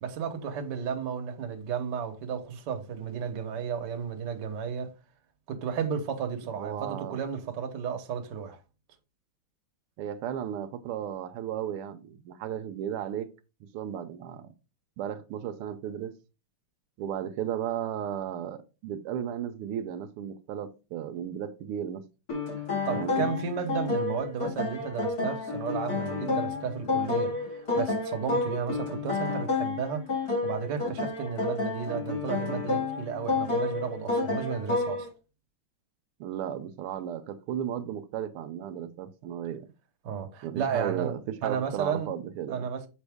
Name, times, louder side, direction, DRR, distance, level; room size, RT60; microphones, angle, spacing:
voice 1, 0.0-4.9 5.5-8.6 22.8-35.1 40.0-41.1 41.4-42.1 42.5-42.9, right 7 dB, 60° right, 1.5 m, -33 dB
voice 2, 6.6-7.2 10.0-13.3 13.6-14.5 15.0-16.1 17.0-22.0 22.9-23.3 36.2-39.7 40.4-42.7, right 9 dB, 85° right, 1.6 m, -35 dB
sound 1, 22.3-35.1, left 3 dB, 45° left, 2.4 m, -30 dB
6.7 x 5.3 x 3.5 m
omnidirectional pair, 2.4 m